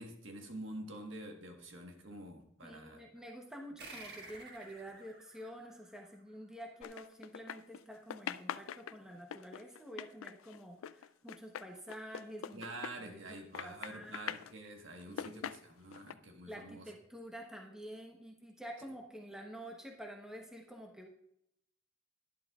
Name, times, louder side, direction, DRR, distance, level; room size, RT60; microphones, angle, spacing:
voice 1, 0.0-3.1 12.5-16.8, right 1 dB, 70° right, 3 dB, 1.5 m, -47 dB
voice 2, 2.6-12.7 13.0-14.3 15.1-15.4 16.4-21.1, equal, 5° right, 0 dB, 1.0 m, -49 dB
sound 1, 3.8-6.8, right 3 dB, 50° right, 1.6 m, -53 dB
sound 2, 6.8-7.8 8.1-13.3 13.5-14.5 15.0-16.1, left 9 dB, 80° left, 0.3 m, -43 dB
12.0 x 11.0 x 2.4 m, 0.75 s
head